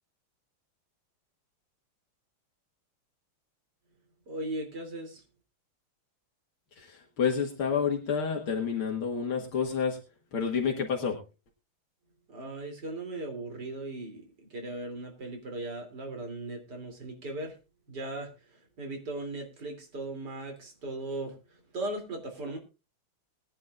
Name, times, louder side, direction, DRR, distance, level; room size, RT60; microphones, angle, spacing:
voice 1, 4.3-5.2 12.3-14.2 14.5-17.6 17.9-22.6, right 2 dB, 50° right, 2 dB, 3.7 m, -38 dB
voice 2, 6.8-10.0 10.3-11.2, left 6 dB, 85° left, 0 dB, 2.7 m, -29 dB
21.0 x 10.5 x 2.5 m, 0.30 s
omnidirectional pair, 2.3 m